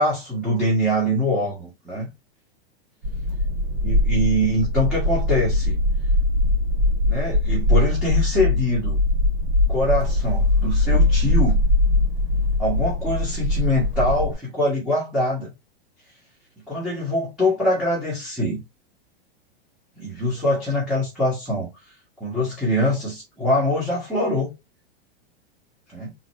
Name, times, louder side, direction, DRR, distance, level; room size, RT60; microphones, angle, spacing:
voice 1, 0.0-2.1 3.8-5.8 7.1-9.0 9.7-11.6 12.6-15.5 16.7-18.6 19.9-21.7 22.2-24.5 25.9-26.1, left 1 dB, ahead, 1.5 m, -23 dB
sound 1, 3.0-14.3, left 1 dB, 50° right, 2.7 m, -21 dB
4.0 x 3.7 x 2.9 m
supercardioid pair, 170°, 30 cm